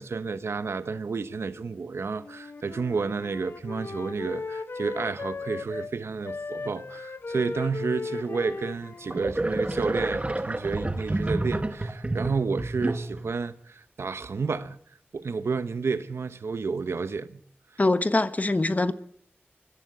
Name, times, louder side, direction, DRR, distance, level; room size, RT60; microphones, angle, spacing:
voice 1, 0.0-14.8 15.1-17.4, right 4 dB, 90° right, 1.0 m, -31 dB
Wind instrument woodwind instrument, 2.2-5.9 6.2-10.3, left 4 dB, 60° left, 1.0 m, -37 dB
sound 1, 9.1-13.3, right 2 dB, 30° right, 1.6 m, -29 dB
voice 2, 17.8-18.9, left 2 dB, 35° left, 1.3 m, -23 dB
22.0 x 15.0 x 8.0 m
wide cardioid pair, 60°, 4 cm